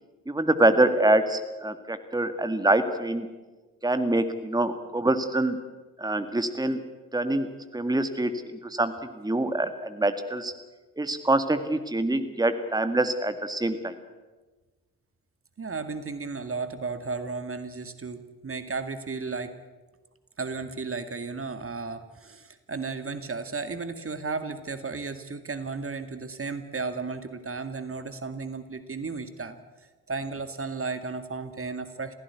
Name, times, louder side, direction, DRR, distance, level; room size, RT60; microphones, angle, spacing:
voice 1, 0.3-3.3 3.8-5.6 6.0-6.8 7.1-7.5 7.7-8.3 8.7-10.5 11.0-13.9, right 2 dB, 10° right, 9 dB, 2.0 m, -25 dB
voice 2, 15.6-19.6 20.4-29.6 30.1-32.1, right 4 dB, 30° right, 10 dB, 2.1 m, -34 dB
27.0 x 16.5 x 8.3 m, 1.3 s
hypercardioid pair, 45°, 45 cm